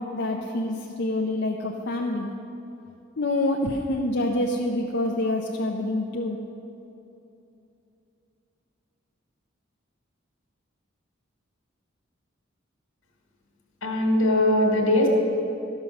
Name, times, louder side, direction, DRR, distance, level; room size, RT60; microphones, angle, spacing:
voice 1, 0.0-2.3 3.2-6.4, left 1 dB, 55° left, 0 dB, 0.6 m, -26 dB
voice 2, 13.8-15.1, left 1 dB, 80° left, -1 dB, 1.6 m, -21 dB
12.0 x 6.3 x 6.3 m, 2.8 s
head